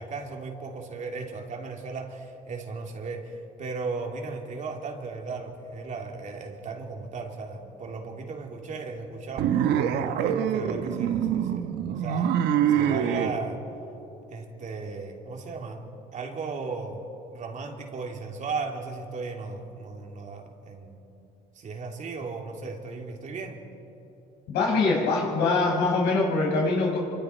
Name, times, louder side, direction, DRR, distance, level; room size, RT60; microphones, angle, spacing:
voice 1, 0.0-9.7 10.0-11.7 12.0-12.4 12.7-13.6 14.3-15.8 16.1-21.0 21.5-23.7, right 4 dB, 45° right, 2 dB, 2.9 m, -36 dB
sound 1, 9.4-13.3, right 9 dB, 80° right, 1.2 m, -25 dB
voice 2, 24.5-27.0, left 3 dB, 85° left, -2 dB, 5.9 m, -23 dB
27.5 x 24.5 x 4.6 m, 3.0 s
cardioid pair, 110°, 17 cm